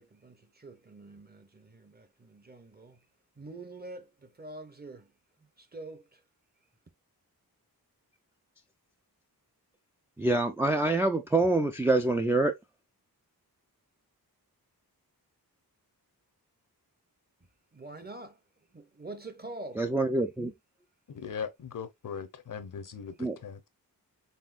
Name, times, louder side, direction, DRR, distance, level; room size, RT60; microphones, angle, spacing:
voice 1, 0.0-3.1 3.4-5.1 5.6-6.2 17.7-18.4 18.7-19.8, right 2 dB, 25° right, 0.7 m, -45 dB
voice 2, 10.2-12.5 19.8-20.5 23.2-23.4, right 2 dB, 5° right, 0.3 m, -26 dB
voice 3, 21.1-23.7, left 6 dB, 55° left, 0.7 m, -39 dB
4.3 x 3.6 x 2.4 m
wide cardioid pair, 115°, 37 cm